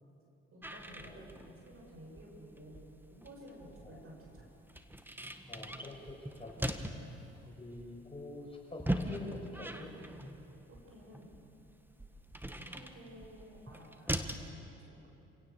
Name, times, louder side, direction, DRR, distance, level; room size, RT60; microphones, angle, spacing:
voice 1, 0.5-4.5 6.8-7.2 10.7-11.4 12.7-15.1, equal, 45° right, 0 dB, 6.5 m, -54 dB
sound 1, 0.6-14.5, right 1 dB, 5° right, 1.6 m, -42 dB
voice 2, 1.0-1.3 3.8-4.0 5.5-6.5 7.4-9.9, left 2 dB, 20° left, -1 dB, 6.2 m, -46 dB
28.0 x 17.5 x 6.9 m, 2.8 s
hypercardioid pair, 60°, 30 cm